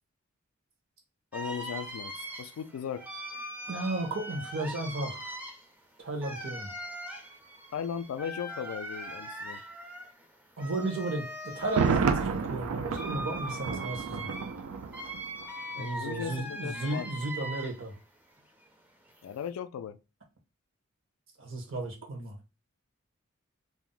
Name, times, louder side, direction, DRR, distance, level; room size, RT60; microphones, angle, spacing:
voice 1, 1.3-3.0 7.7-9.6 15.7-17.1 19.2-20.0, left 7 dB, 90° left, 0.3 m, -37 dB
sound 1, 1.3-18.0 18.3-19.5, right 1 dB, 10° right, 0.4 m, -41 dB
voice 2, 3.7-5.4 6.0-6.7 10.6-14.3 15.8-17.9 21.4-22.4, right 2 dB, 65° right, 0.9 m, -34 dB
Thunder, 11.6-15.5 15.8-15.9, right 5 dB, 85° right, 0.4 m, -30 dB
2.5 x 2.0 x 3.8 m
head